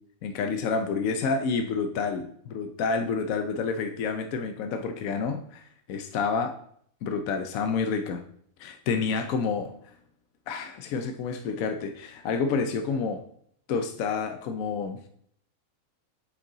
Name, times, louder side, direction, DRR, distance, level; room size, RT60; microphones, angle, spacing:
voice 1, 0.2-6.5 7.0-8.2 8.6-9.7 10.5-13.2 13.7-15.0, left 5 dB, 75° left, 6 dB, 1.1 m, -29 dB
8.5 x 5.4 x 3.9 m, 0.65 s
omnidirectional pair, 1.5 m